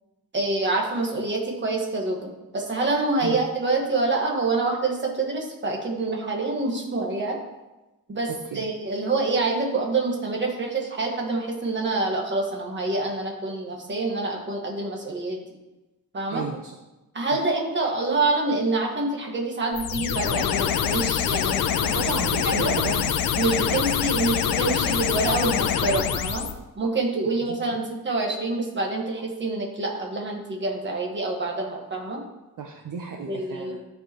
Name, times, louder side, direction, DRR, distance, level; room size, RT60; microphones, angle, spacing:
voice 1, 0.3-7.4 8.1-15.4 16.1-16.4 17.1-22.0 22.5-22.8 23.4-26.5 26.7-32.2 33.3-33.8, right 3 dB, 30° right, 0 dB, 1.5 m, -26 dB
voice 2, 16.3-16.7 21.9-23.1 23.7-23.8 27.5-27.8 32.6-33.8, right 5 dB, 60° right, 2 dB, 0.7 m, -33 dB
sound 1, 19.7-26.5, left 8 dB, 75° left, 0.6 m, -25 dB
13.0 x 4.7 x 3.0 m, 1.0 s
wide cardioid pair, 175°, 35 cm